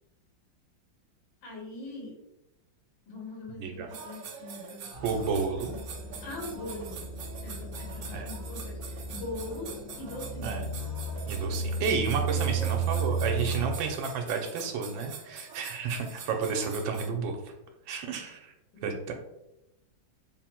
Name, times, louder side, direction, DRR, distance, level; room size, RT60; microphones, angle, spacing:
voice 1, 1.4-2.1 3.1-4.9 6.2-7.1 7.4-10.7 12.3-12.7 18.7-19.1, left 2 dB, 85° left, -3 dB, 1.9 m, -41 dB
sound 1, 3.9-17.1, right 5 dB, 70° right, 0.8 m, -44 dB
sound 2, 4.9-13.7, right 4 dB, 50° left, 1.0 m, -34 dB
voice 2, 5.0-5.8 8.1-8.3 10.4-10.6 11.3-17.4 17.9-18.5 18.8-19.1, right 5 dB, 90° right, 3 dB, 1.4 m, -31 dB
3.8 x 2.0 x 4.3 m, 0.88 s
omnidirectional pair, 2.0 m